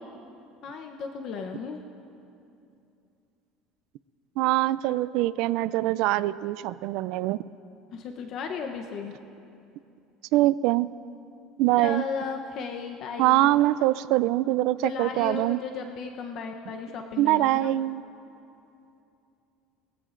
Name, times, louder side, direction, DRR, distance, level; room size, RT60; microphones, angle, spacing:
voice 1, 0.6-1.8 7.9-9.1 11.8-13.5 14.8-17.7, left 5 dB, 50° left, 3 dB, 0.8 m, -35 dB
voice 2, 4.4-7.4 10.3-10.9 11.6-12.0 13.2-15.6 17.2-18.0, right 16 dB, 70° right, 18 dB, 0.3 m, -23 dB
21.5 x 15.0 x 2.5 m, 2.7 s
cardioid pair, 140°, 0 cm